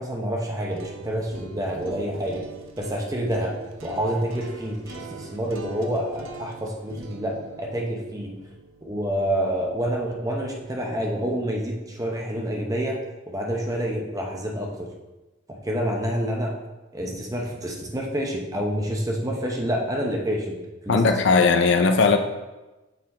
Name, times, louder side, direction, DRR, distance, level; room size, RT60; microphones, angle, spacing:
voice 1, 0.0-2.4 2.8-3.5 3.8-8.3 8.8-13.0 13.3-14.9 15.5-16.5 16.9-20.6 20.8-21.5, equal, 15° right, 0 dB, 0.8 m, -28 dB
sound 1, 0.5-10.6, right 4 dB, 85° right, 0.7 m, -43 dB
voice 2, 20.9-22.2, left 4 dB, 60° left, 7 dB, 0.5 m, -18 dB
6.7 x 4.0 x 4.2 m, 1.1 s
head